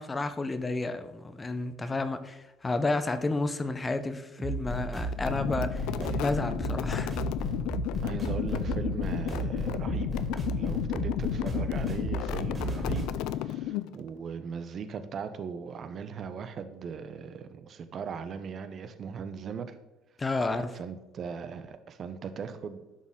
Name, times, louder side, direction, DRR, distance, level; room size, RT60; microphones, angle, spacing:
voice 1, 0.0-5.9 6.2-7.2 20.2-20.7, left 2 dB, 20° left, 10 dB, 0.6 m, -31 dB
sound 1, 4.4-13.1, right 2 dB, 25° right, 2.7 m, -34 dB
sound 2, 5.1-14.1, left 13 dB, 80° left, 0.3 m, -33 dB
voice 2, 8.0-13.1 13.3-19.8 20.7-22.8, right 6 dB, 50° right, 10 dB, 0.7 m, -39 dB
11.0 x 4.1 x 3.7 m, 1.0 s
cardioid pair, 100°, 0 cm